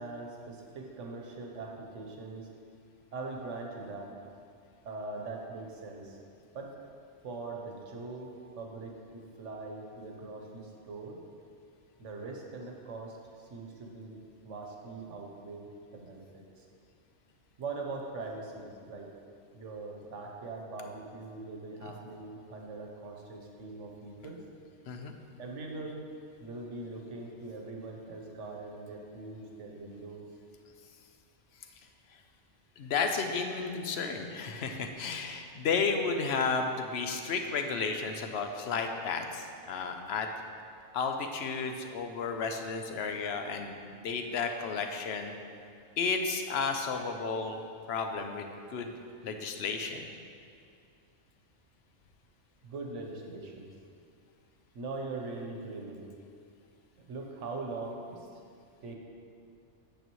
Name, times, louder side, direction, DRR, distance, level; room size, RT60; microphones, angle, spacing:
voice 1, 0.0-2.5 3.1-4.1 4.8-6.2 6.5-6.7 7.2-11.2 12.0-16.7 17.6-19.1 19.5-24.4 25.4-26.1 26.4-30.2 52.6-53.7 54.7-56.1 57.0-58.3 58.8-59.0, right 3 dB, 75° right, 1 dB, 1.3 m, -42 dB
voice 2, 32.8-40.3 40.9-45.3 46.0-47.6 47.9-48.9 49.2-50.1, left 5 dB, 65° left, 5 dB, 0.8 m, -33 dB
8.8 x 6.8 x 3.0 m, 2.4 s
omnidirectional pair, 1.3 m